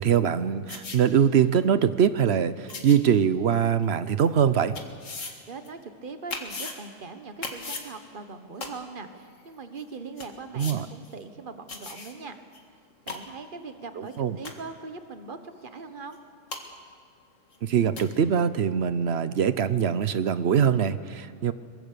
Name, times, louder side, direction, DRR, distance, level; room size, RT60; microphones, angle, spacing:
voice 1, 0.0-4.7 10.5-10.9 14.0-14.4 17.6-21.5, right 8 dB, 60° right, 14 dB, 1.0 m, -23 dB
sound 1, 0.7-1.0 1.6-1.7 2.7-3.0 3.8-3.9 4.7-5.3 5.6-5.7 6.3-6.7 7.4-7.9 8.6-8.7 9.4-9.5 9.8-9.9 10.2-10.3 10.6-10.7 11.0-11.1 11.7-12.1 12.5-12.6 12.9-13.2 14.1-14.2 14.4-14.7 16.1-16.2 16.5-16.6 17.5-17.6 18.0-18.1, left 3 dB, 75° left, 2.3 m, -36 dB
voice 2, 5.5-12.4 13.1-16.2, right 4 dB, 40° right, 8 dB, 1.5 m, -41 dB
23.0 x 21.5 x 6.9 m, 2.1 s
omnidirectional pair, 1.3 m